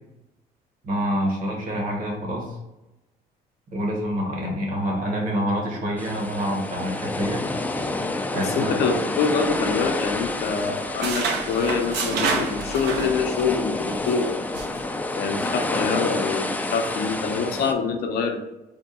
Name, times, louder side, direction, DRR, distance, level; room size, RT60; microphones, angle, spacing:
voice 1, 0.8-2.6 3.7-7.4 8.3-8.7, equal, 55° right, 0 dB, 1.3 m, -27 dB
sound 1, 6.0-17.7, left 2 dB, 10° left, 0.3 m, -29 dB
voice 2, 8.4-14.3 15.1-18.4, left 5 dB, 70° left, 4 dB, 0.6 m, -25 dB
sound 2, 9.4-10.3 10.6-13.6 13.9-14.1 14.5-14.8, right 4 dB, 80° right, 0.7 m, -29 dB
3.6 x 2.2 x 4.0 m, 0.98 s
cardioid pair, 110°, 17 cm